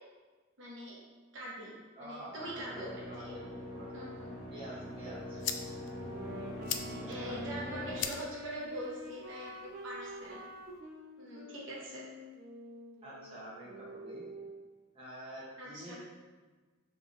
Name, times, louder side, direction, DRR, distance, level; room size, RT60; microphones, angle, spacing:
voice 1, 0.6-1.0 1.3-3.4 3.9-4.2 6.9-10.4 11.2-12.0 15.6-16.0, right 1 dB, 75° right, -5 dB, 1.1 m, -43 dB
voice 2, 2.0-3.8 4.5-5.4 7.0-7.4 13.0-14.2 14.9-16.0, right 1 dB, 30° right, -7 dB, 1.1 m, -48 dB
sound 1, 2.3-8.0, left 1 dB, 45° left, 1.2 m, -43 dB
sound 2, 4.8-10.8, left 8 dB, 65° left, 0.3 m, -44 dB
Wind instrument woodwind instrument, 6.0-14.7, left 1 dB, 50° right, 0.5 m, -47 dB
5.5 x 3.5 x 2.6 m, 1.3 s
head